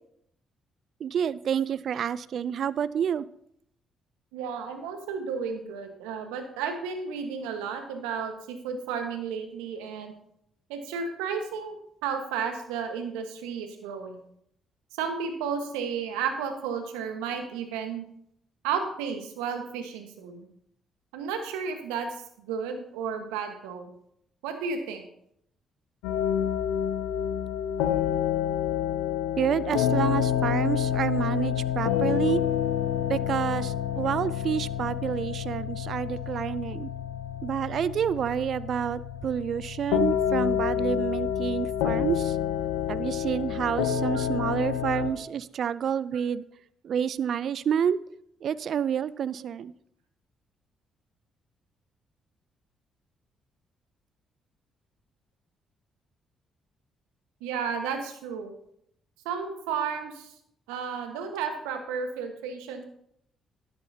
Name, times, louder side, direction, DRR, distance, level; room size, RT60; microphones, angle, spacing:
voice 1, 1.0-3.3 29.4-32.4 33.1-36.9 37.4-42.4 42.9-46.4 46.8-48.0 48.4-49.7, right 8 dB, 60° right, 18 dB, 0.4 m, -29 dB
voice 2, 4.3-10.1 10.7-11.8 12.0-14.2 14.9-18.0 18.6-20.5 21.1-23.9 24.4-25.0 44.1-44.2 44.9-45.0 57.4-58.5 59.2-60.3 60.7-62.8, right 6 dB, 80° right, 6 dB, 1.4 m, -33 dB
sound 1, 26.0-45.1, left 9 dB, 80° left, 0.8 m, -28 dB
13.0 x 11.0 x 2.8 m, 0.71 s
hypercardioid pair, 45°, 0 cm